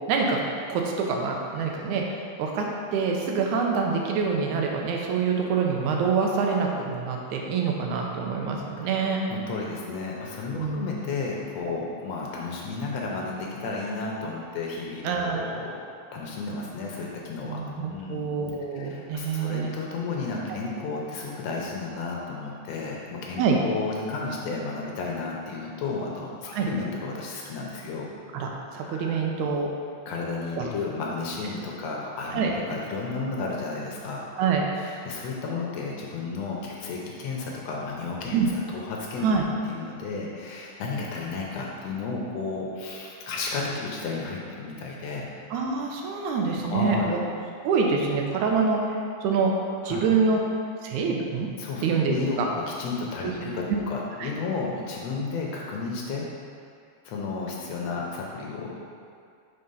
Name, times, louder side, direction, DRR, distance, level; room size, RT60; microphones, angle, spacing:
voice 1, 0.1-0.4 0.7-2.7 2.9-9.2 10.6-10.9 15.0-15.6 17.5-19.7 20.5-20.6 23.4-23.6 26.5-26.7 28.3-29.7 30.6-30.7 32.3-32.5 34.4-34.7 38.3-38.5 39.2-39.5 45.5-47.2 47.6-49.5 49.8-50.4 50.8-51.5 51.8-52.5 53.2-53.4 53.7-53.8 54.2-54.3, right 5 dB, 85° right, 0 dB, 2.2 m, -26 dB
voice 2, 9.3-15.7 16.1-17.6 17.9-18.2 18.7-28.1 28.9-29.1 30.1-34.2 34.8-39.2 39.6-45.3 46.7-47.1 49.8-50.0 51.6-56.3 57.1-58.8, left 4 dB, 70° left, -2 dB, 1.9 m, -33 dB
6.5 x 3.8 x 5.4 m, 2.3 s
omnidirectional pair, 3.3 m